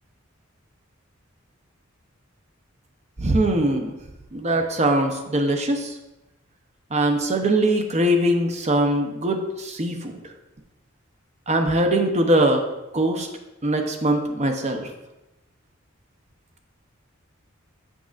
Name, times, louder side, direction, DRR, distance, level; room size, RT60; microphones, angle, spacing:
voice 1, 3.2-3.9 4.3-5.9 6.9-10.2 11.5-12.6 12.9-13.3 13.6-14.9, right 1 dB, 35° right, 4 dB, 0.7 m, -21 dB
6.7 x 6.2 x 2.4 m, 0.97 s
head